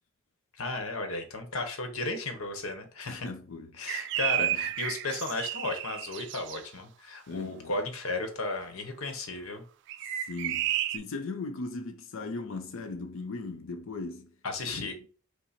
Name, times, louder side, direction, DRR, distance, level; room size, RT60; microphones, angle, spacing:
voice 1, 0.6-3.3 3.8-9.6 14.4-15.1, left 2 dB, 85° left, 0.9 m, -34 dB
voice 2, 3.1-4.1 4.4-4.6 7.3-7.7 10.2-14.3 14.7-15.1, left 3 dB, 70° left, 0.5 m, -38 dB
sound 1, 3.9-6.6 9.9-11.0, right 13 dB, 60° right, 0.3 m, -32 dB
5.6 x 2.0 x 4.1 m
head